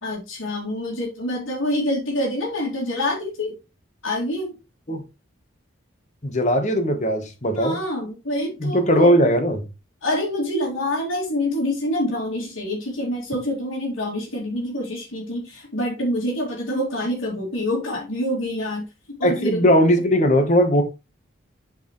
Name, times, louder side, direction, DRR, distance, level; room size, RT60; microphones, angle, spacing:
voice 1, 0.0-3.6 4.0-4.5 7.5-9.3 10.0-18.8 19.2-19.7, left 1 dB, 90° left, 2.3 m, -26 dB
voice 2, 6.2-7.8 8.6-9.7 19.2-20.8, equal, 35° left, 1.1 m, -19 dB
9.1 x 4.7 x 3.1 m
head